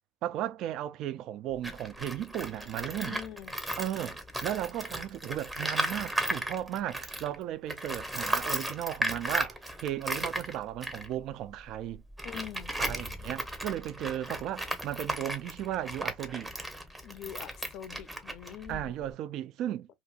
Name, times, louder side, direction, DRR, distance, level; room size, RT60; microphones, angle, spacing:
voice 1, 0.2-3.2 3.8-12.0 12.8-16.5 18.7-19.9, right 12 dB, 60° right, 0.3 m, -35 dB
Tools, 1.5-7.4 7.7-19.1, right 1 dB, 10° right, 0.7 m, -36 dB
voice 2, 3.0-3.5 12.2-12.7 17.0-18.9, left 10 dB, 60° left, 0.5 m, -43 dB
2.9 x 2.5 x 2.3 m
supercardioid pair, 95°, 0 cm